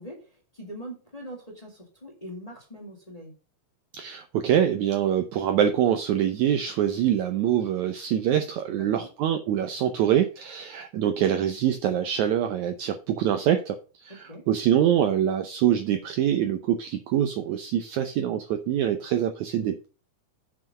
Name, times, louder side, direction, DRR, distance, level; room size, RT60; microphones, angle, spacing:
voice 1, 0.0-3.3 8.7-9.1 14.2-14.5, equal, 15° left, 0 dB, 1.8 m, -42 dB
voice 2, 3.9-19.9, right 10 dB, 75° right, 7 dB, 1.8 m, -25 dB
7.7 x 6.0 x 5.4 m, 0.34 s
omnidirectional pair, 4.0 m